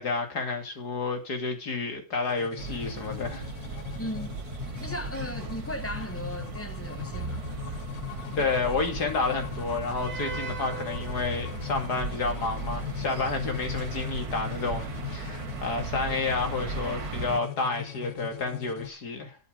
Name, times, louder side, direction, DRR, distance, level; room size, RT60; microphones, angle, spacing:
voice 1, 0.0-3.5 8.3-19.4, left 4 dB, 60° left, 3.0 m, -30 dB
sound 1, 2.2-18.9, left 13 dB, 80° left, 1.5 m, -40 dB
sound 2, 2.6-17.4, right 5 dB, 55° right, 1.8 m, -37 dB
voice 2, 4.0-4.3 4.8-7.8, left 1 dB, 25° left, 0.3 m, -37 dB
9.6 x 8.7 x 5.1 m
omnidirectional pair, 1.9 m